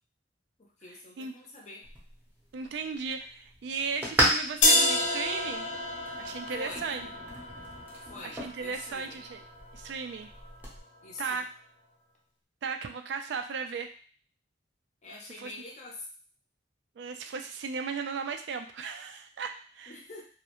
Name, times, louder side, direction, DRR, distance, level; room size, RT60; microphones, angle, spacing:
voice 1, 0.6-1.9 6.5-6.9 8.0-9.2 11.0-11.4 15.0-16.1 19.9-20.2, left 2 dB, 40° left, -1 dB, 0.5 m, -45 dB
sound 1, 1.8-10.8, right 1 dB, 10° right, 0.6 m, -35 dB
voice 2, 2.5-5.7 6.2-7.1 8.2-9.4 9.7-10.3 11.2-11.5 12.6-13.9 15.4-15.5 17.0-20.0, right 5 dB, 65° right, 6 dB, 0.3 m, -36 dB
sound 2, 4.6-10.6, left 2 dB, 90° left, 0.6 m, -30 dB
2.4 x 2.0 x 2.9 m, 0.41 s
head